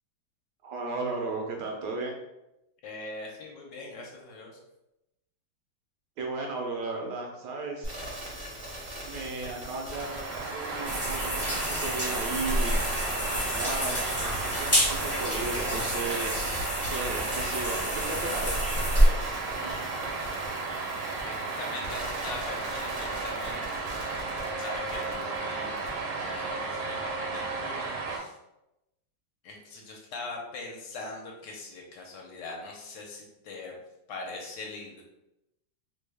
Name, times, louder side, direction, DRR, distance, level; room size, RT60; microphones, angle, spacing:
voice 1, 0.6-2.1 6.2-7.9 9.0-12.8 13.3-18.4, right 3 dB, 70° right, 0 dB, 1.1 m, -35 dB
voice 2, 2.8-4.6 19.6-19.9 21.2-23.6 24.6-25.8 26.2-28.3 29.4-33.8 34.1-35.0, left 3 dB, 70° left, 0 dB, 1.2 m, -41 dB
sound 1, 7.8-25.4 25.8-25.9, right 1 dB, 50° right, 0.7 m, -42 dB
sound 2, 9.9-28.2, right 3 dB, 90° right, 1.4 m, -34 dB
sound 3, 10.8-19.1, equal, 15° left, 0.5 m, -28 dB
3.2 x 2.2 x 3.3 m, 0.89 s
omnidirectional pair, 2.1 m